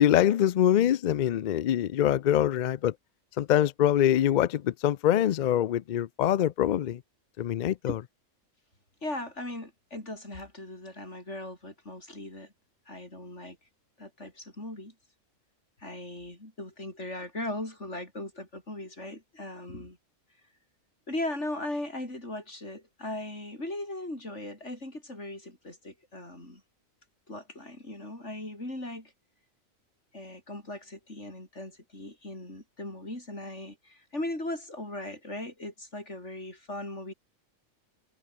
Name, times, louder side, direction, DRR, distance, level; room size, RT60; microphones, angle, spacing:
voice 1, 0.0-2.9 3.4-7.0 7.4-8.0, left 11 dB, 75° left, 0.4 m, -24 dB
voice 2, 9.0-12.5 12.9-13.6 14.0-14.9 15.8-20.0 21.1-26.6 27.3-29.1 30.1-37.1, left 1 dB, 60° left, 7.7 m, -38 dB
omnidirectional pair, 1.4 m